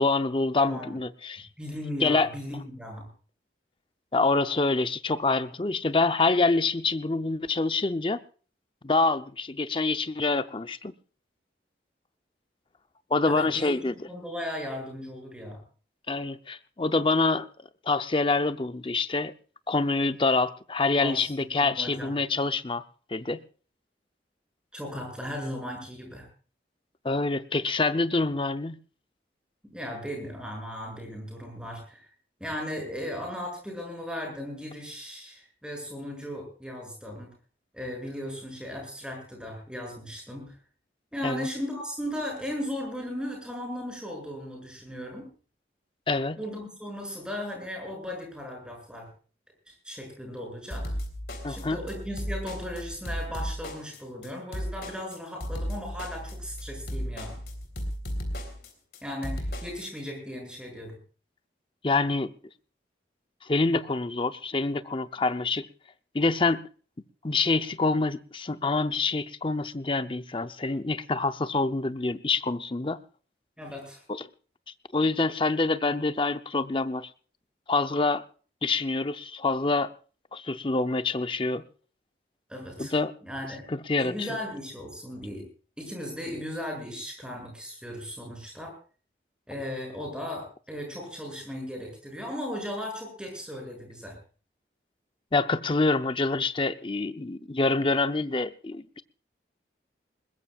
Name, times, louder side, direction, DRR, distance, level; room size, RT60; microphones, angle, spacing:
voice 1, 0.0-1.5 2.0-2.3 4.1-8.2 8.8-10.9 13.1-14.1 16.1-17.5 17.9-19.3 19.7-22.8 23.1-23.4 27.0-28.8 41.2-41.5 46.1-46.4 51.4-51.8 61.8-62.3 63.4-65.7 66.1-66.6 67.2-73.0 74.1-74.3 74.9-77.1 77.7-78.2 78.6-79.9 80.3-81.6 82.8-83.1 83.7-84.3 95.3-99.0, left 3 dB, 30° left, 11 dB, 0.6 m, -26 dB
voice 2, 0.6-1.0 1.6-3.1 13.3-15.6 20.9-21.3 21.6-22.1 24.7-26.3 29.6-32.1 32.4-37.3 37.7-40.6 41.1-45.3 46.4-49.1 49.7-51.0 51.5-57.4 59.0-61.0 73.6-74.0 82.5-82.9 83.2-83.7 84.0-85.5 85.8-88.7 89.5-94.2, equal, 5° right, 1 dB, 7.1 m, -37 dB
sound 1, 50.7-59.9, equal, 60° left, 3.8 m, -35 dB
21.0 x 20.5 x 2.4 m, 0.39 s
head